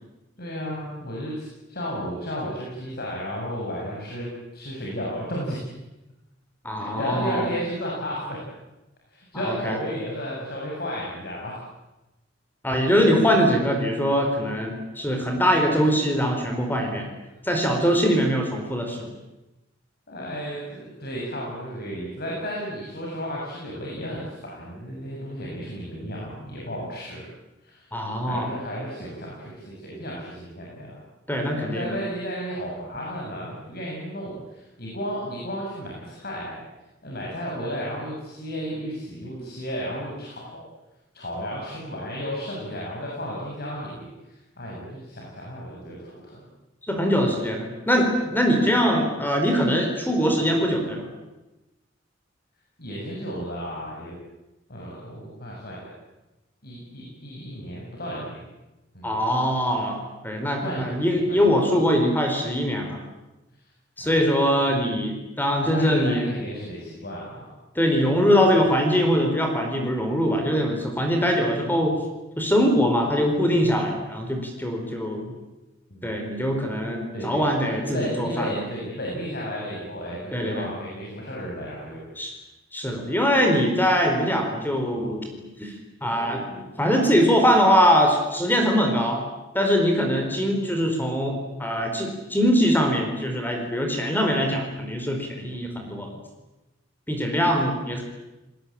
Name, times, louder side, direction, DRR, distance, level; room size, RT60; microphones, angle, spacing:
voice 1, 0.4-5.7 6.7-8.4 9.1-11.6 16.8-17.0 19.0-19.1 20.1-27.2 27.6-27.9 28.3-31.0 31.5-36.6 37.0-40.7 41.1-46.5 52.8-54.2 54.7-55.9 56.6-58.4 58.9-59.2 60.5-61.0 61.3-61.4 64.0-64.2 65.6-67.5 75.9-76.2 77.1-82.3, equal, 55° left, -3 dB, 7.3 m, -33 dB
voice 2, 6.6-7.4 9.4-9.8 12.6-17.1 17.4-19.1 27.9-28.5 31.3-31.9 46.9-51.1 59.0-63.0 64.0-66.3 67.7-72.0 72.4-75.3 76.0-78.6 80.3-80.7 82.2-82.3 82.7-85.7 86.0-89.2 89.5-96.1 97.1-98.0, equal, 10° left, 3 dB, 4.5 m, -22 dB
30.0 x 20.5 x 8.8 m, 1.0 s
head